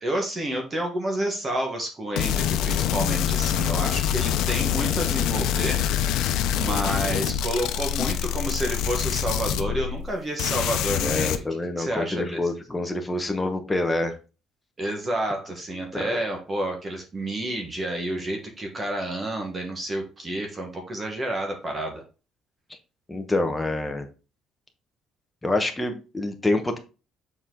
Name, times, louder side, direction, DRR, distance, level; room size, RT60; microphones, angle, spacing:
voice 1, 0.0-5.8 6.6-11.4 11.8-12.4 14.8-22.0, right 1 dB, 20° right, 3 dB, 1.3 m, -29 dB
sound 1, 2.2-10.1 10.4-11.4, left 10 dB, 80° left, 0.7 m, -25 dB
voice 2, 11.0-14.1 15.9-16.2 23.1-24.1 25.4-26.8, left 2 dB, 10° left, 4 dB, 1.0 m, -27 dB
7.1 x 4.4 x 3.8 m, 0.33 s
cardioid pair, 155°, 0 cm